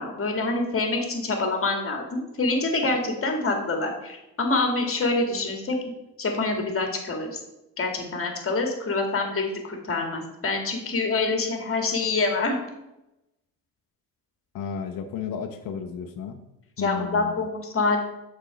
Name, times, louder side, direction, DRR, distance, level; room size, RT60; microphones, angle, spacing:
voice 1, 0.0-5.8 6.2-7.4 7.8-12.6 16.8-18.0, left 3 dB, 35° left, 3 dB, 2.1 m, -26 dB
voice 2, 14.5-16.4 16.8-17.4, left 7 dB, 65° left, 5 dB, 0.8 m, -33 dB
6.7 x 4.4 x 6.3 m, 0.92 s
supercardioid pair, 80°, 37 cm